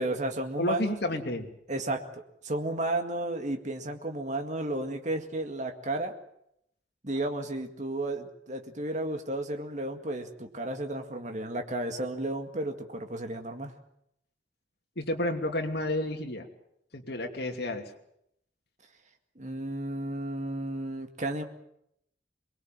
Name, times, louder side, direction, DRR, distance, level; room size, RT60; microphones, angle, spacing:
voice 1, 0.0-1.2 1.7-2.0 2.4-6.1 7.0-13.7 19.4-21.4, right 1 dB, 40° right, 5 dB, 2.0 m, -33 dB
voice 2, 0.6-1.5 15.0-16.5 16.9-17.9, left 1 dB, 60° left, 3 dB, 2.8 m, -31 dB
23.5 x 21.0 x 7.5 m, 0.76 s
head